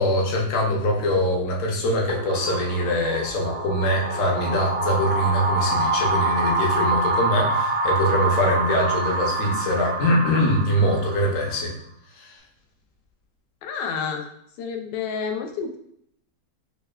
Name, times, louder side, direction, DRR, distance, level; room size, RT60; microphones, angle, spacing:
voice 1, 0.0-11.7 12.1-12.4, equal, 55° left, -1 dB, 1.1 m, -23 dB
sound 1, 2.1-11.6, right 2 dB, 70° right, 1.0 m, -26 dB
voice 2, 13.6-14.3 14.6-15.8, left 6 dB, 85° left, 4 dB, 1.3 m, -29 dB
6.4 x 2.1 x 2.3 m, 0.71 s
omnidirectional pair, 1.9 m